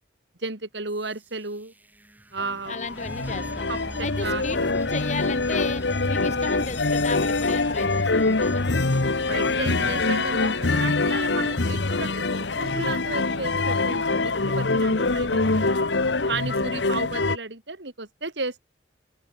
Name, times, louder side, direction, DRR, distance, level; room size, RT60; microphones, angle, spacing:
voice 1, 0.4-1.7 2.3-2.8 3.7-4.8 9.2-15.9 16.3-18.6, right 3 dB, 80° right, 3.1 m, -33 dB
sound 1, 0.9-11.7, equal, 10° right, 1.5 m, -42 dB
sound 2, 2.4-17.4, left 3 dB, 80° left, 1.3 m, -24 dB
voice 2, 2.7-3.7 4.0-8.6, left 3 dB, 40° left, 1.4 m, -34 dB
sound 3, 9.4-10.5 10.8-13.6 13.8-14.0 15.0-15.4 16.5-16.6, right 1 dB, 55° right, 5.9 m, -51 dB
open air
head